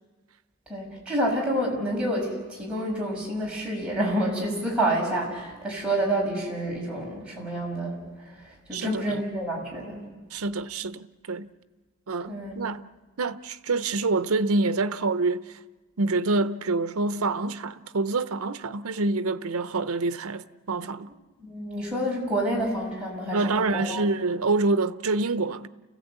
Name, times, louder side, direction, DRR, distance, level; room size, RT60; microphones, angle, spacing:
voice 1, 0.7-8.0 8.7-10.0 12.3-12.5 21.4-24.1, right 1 dB, 5° right, 6.0 m, -28 dB
voice 2, 8.7-9.2 10.3-11.5 12.1-12.8 13.2-15.4 16.0-21.1 23.3-25.7, right 3 dB, 90° right, 0.7 m, -26 dB
29.5 x 16.0 x 8.1 m
head